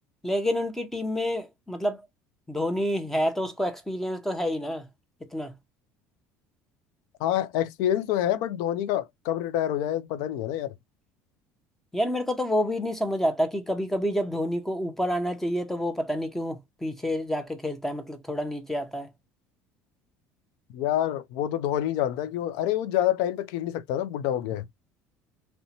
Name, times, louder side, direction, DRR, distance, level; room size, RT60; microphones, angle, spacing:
voice 1, 0.2-2.0 2.5-4.9 5.3-5.5 11.9-19.1, equal, 5° left, 0.6 m, -28 dB
voice 2, 7.2-10.7 20.7-24.7, left 11 dB, 80° left, 0.4 m, -27 dB
2.6 x 2.1 x 2.7 m
cardioid pair, 120°, 6 cm